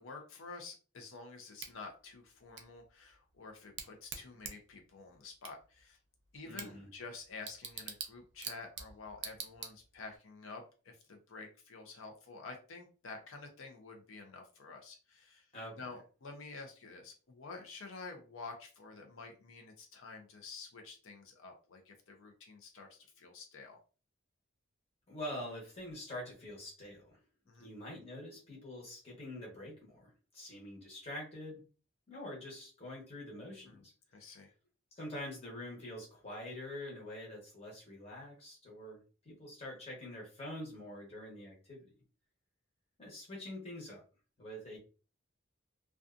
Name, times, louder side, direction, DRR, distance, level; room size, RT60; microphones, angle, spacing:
voice 1, 0.0-6.0 6.3-15.5 15.8-23.8 27.5-27.7 33.7-33.8 34.1-34.5, left 4 dB, 90° left, 3 dB, 0.6 m, -49 dB
Bicycle / Tick, 1.6-10.2, right 7 dB, 60° right, 0.5 m, -48 dB
voice 2, 6.4-6.9 15.5-15.8 25.1-27.2 27.6-31.6 32.1-33.9 34.9-39.0 39.2-41.9 43.0-44.0 44.4-44.8, left 1 dB, 30° left, -4 dB, 1.0 m, -45 dB
2.5 x 2.3 x 2.4 m, 0.36 s
head